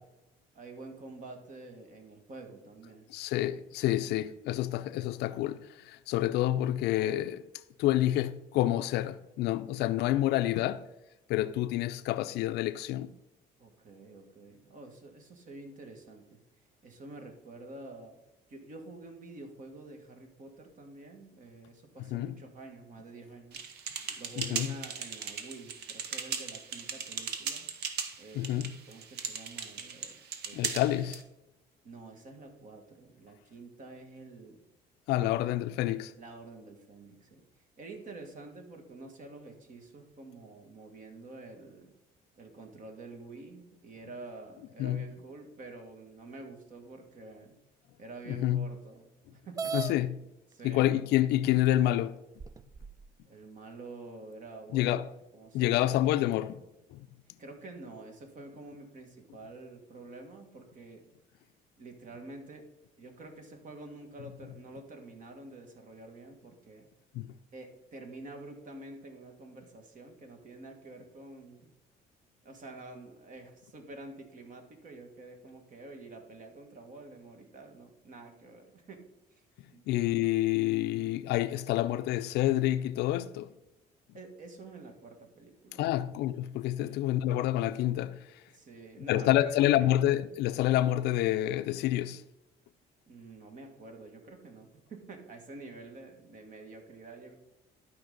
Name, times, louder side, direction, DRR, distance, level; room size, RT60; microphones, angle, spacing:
voice 1, 0.5-3.1 13.6-16.4 16.8-18.2 18.5-23.6 23.9-27.6 28.2-30.2 30.4-30.8 31.8-34.6 35.2-35.5 36.2-37.4 37.8-41.9 42.4-47.5 48.0-49.7 50.5-50.9 53.2-55.0 55.3-56.0 57.4-61.0 61.8-62.7 63.0-66.9 67.5-71.7 72.4-79.4 79.7-79.9 84.1-85.9 86.8-87.1 88.5-89.9 93.1-97.3, right 2 dB, 50° right, 1.8 m, -48 dB
voice 2, 3.1-7.4 7.8-10.9 11.3-13.1 22.1-22.3 24.4-24.7 28.3-28.7 30.5-31.2 35.1-36.1 44.8-45.0 48.3-48.7 49.7-50.1 50.6-52.2 54.7-55.1 55.5-56.6 56.9-57.1 67.1-67.3 79.9-83.5 85.8-88.4 89.1-92.2, left 14 dB, 80° left, 0.4 m, -28 dB
sound 1, 23.5-31.2, right 6 dB, 75° right, 1.1 m, -38 dB
sound 2, 49.6-49.9 50.9-51.0 51.7-51.8 52.4-53.1, right 5 dB, 20° right, 0.3 m, -36 dB
12.0 x 5.1 x 3.9 m
cardioid pair, 110°, 17 cm